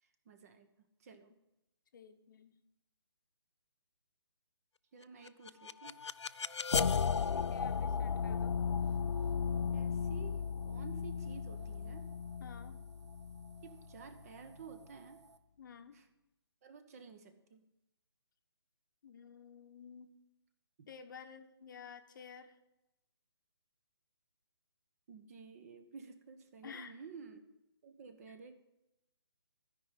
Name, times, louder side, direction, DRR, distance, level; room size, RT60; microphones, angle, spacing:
voice 1, 0.0-0.7 1.0-1.3 4.9-6.0 9.7-12.1 13.6-15.2 15.9-16.1 16.6-17.6 20.8-20.9 25.1-27.5 27.8-28.6, right 5 dB, 35° right, 9 dB, 1.0 m, -52 dB
voice 2, 1.9-2.5 7.0-8.6 12.4-12.8 15.6-16.0 19.0-20.2 20.9-22.6 26.6-27.0, left 7 dB, 45° left, 8 dB, 0.9 m, -52 dB
sound 1, 5.3-14.2, left 6 dB, 85° left, 0.4 m, -35 dB
sound 2, 5.8-15.4, right 5 dB, 85° right, 0.9 m, -60 dB
13.0 x 5.4 x 8.2 m, 0.90 s
figure-of-eight pair, 150°, 14 cm